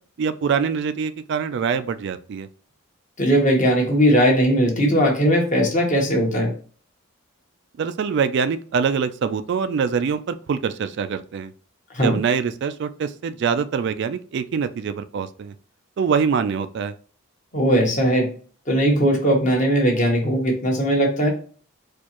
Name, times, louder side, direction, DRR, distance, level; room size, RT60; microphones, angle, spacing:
voice 1, 0.2-2.5 7.8-11.5 12.0-15.5 16.0-16.9, right 6 dB, 55° right, 11 dB, 0.3 m, -24 dB
voice 2, 3.2-6.5 11.9-12.2 17.5-18.3 18.7-21.3, equal, 35° left, 0 dB, 1.2 m, -19 dB
4.4 x 2.4 x 2.9 m, 0.41 s
head